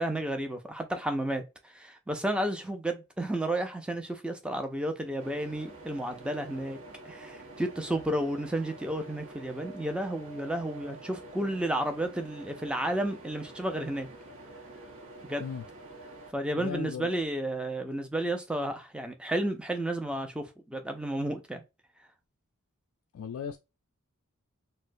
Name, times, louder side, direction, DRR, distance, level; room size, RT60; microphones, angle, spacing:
voice 1, 0.0-6.8 7.0-14.1 15.2-15.5 16.3-21.6, right 1 dB, 5° right, 0.4 m, -32 dB
sound 1, 5.2-16.3, right 2 dB, 60° right, 0.9 m, -47 dB
voice 2, 16.5-17.1 23.1-23.6, left 7 dB, 65° left, 0.3 m, -36 dB
4.2 x 2.0 x 2.6 m
head